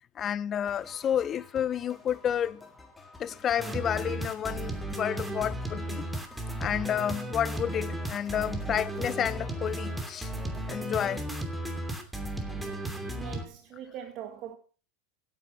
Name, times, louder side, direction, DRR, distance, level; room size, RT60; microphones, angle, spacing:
voice 1, 0.2-2.6 3.2-6.1 6.6-10.3 10.7-11.2 12.0-12.1 13.0-13.1, left 9 dB, 35° left, 0.7 m, -30 dB
sound 1, 0.7-11.2, left 3 dB, 10° left, 3.4 m, -51 dB
sound 2, 3.6-13.4, right 1 dB, 5° right, 2.9 m, -34 dB
voice 2, 12.5-14.6, right 10 dB, 50° right, 1.9 m, -43 dB
16.0 x 9.3 x 5.9 m
hypercardioid pair, 95°, 0 cm